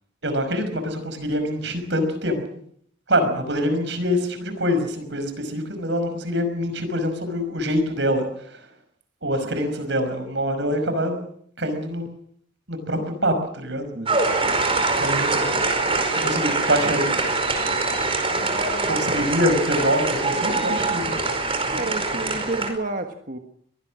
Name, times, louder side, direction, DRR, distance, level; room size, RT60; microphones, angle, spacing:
voice 1, 0.2-2.4 3.1-8.6 9.2-11.2 11.6-12.1 12.7-13.9 15.0-15.5 16.1-17.1 18.9-21.2, equal, 65° right, 9 dB, 5.5 m, -25 dB
voice 2, 13.9-14.3 21.7-23.4, right 2 dB, 45° right, 4 dB, 1.6 m, -30 dB
sound 1, 14.1-22.7, right 3 dB, 30° right, 4.9 m, -23 dB
24.0 x 19.0 x 6.4 m, 0.64 s
head